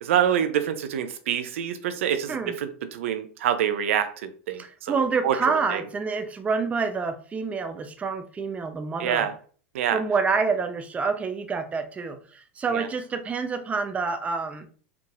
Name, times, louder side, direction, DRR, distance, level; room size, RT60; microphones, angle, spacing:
voice 1, 0.0-5.8 9.0-9.3 9.7-10.0 12.7-12.9, right 9 dB, 75° right, 0.6 m, -26 dB
voice 2, 4.6-9.3 9.9-14.7, right 4 dB, 20° right, 0.6 m, -27 dB
4.4 x 3.7 x 2.5 m
hypercardioid pair, 105°, 7 cm